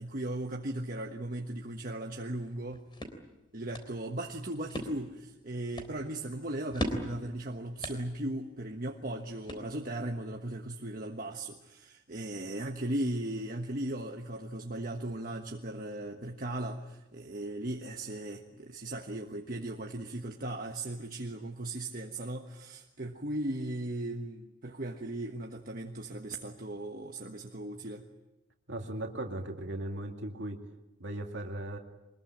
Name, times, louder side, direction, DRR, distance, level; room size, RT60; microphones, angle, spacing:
voice 1, 0.0-2.9 3.5-28.0, right 1 dB, 45° right, 2 dB, 1.4 m, -37 dB
sound 1, 2.5-10.1, equal, 25° left, 3.5 m, -42 dB
voice 2, 28.7-30.6 31.0-31.8, right 1 dB, 70° right, 2 dB, 2.3 m, -37 dB
24.5 x 21.0 x 8.9 m, 0.97 s
head